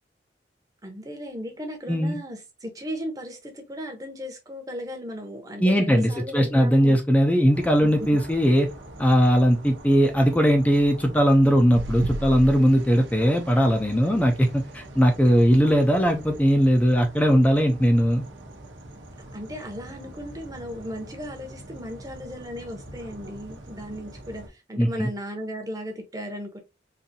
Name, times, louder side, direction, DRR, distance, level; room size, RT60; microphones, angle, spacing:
voice 1, 0.8-7.0 15.2-15.6 19.3-26.6, equal, 20° right, 0.8 m, -36 dB
voice 2, 5.6-8.7 9.0-18.2 24.8-25.1, equal, 10° left, 0.5 m, -19 dB
sound 1, 7.5-24.5, right 1 dB, 85° right, 0.9 m, -43 dB
sound 2, 11.7-16.4 17.0-17.3 17.6-17.7, right 2 dB, 65° right, 0.5 m, -38 dB
3.9 x 2.7 x 2.7 m
head